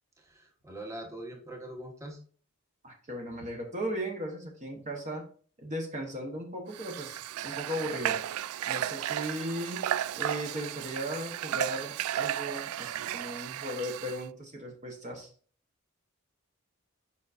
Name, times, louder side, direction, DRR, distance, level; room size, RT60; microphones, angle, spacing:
voice 1, 0.2-2.2, right 1 dB, 15° right, 1 dB, 1.1 m, -43 dB
voice 2, 2.8-5.2 5.6-8.2 8.7-9.9 10.1-15.3, equal, 35° right, 1 dB, 1.0 m, -37 dB
Water / Water tap faucet, 6.7-14.2, right 11 dB, 85° right, 0.3 m, -34 dB
7.2 x 5.5 x 2.5 m, 0.44 s
head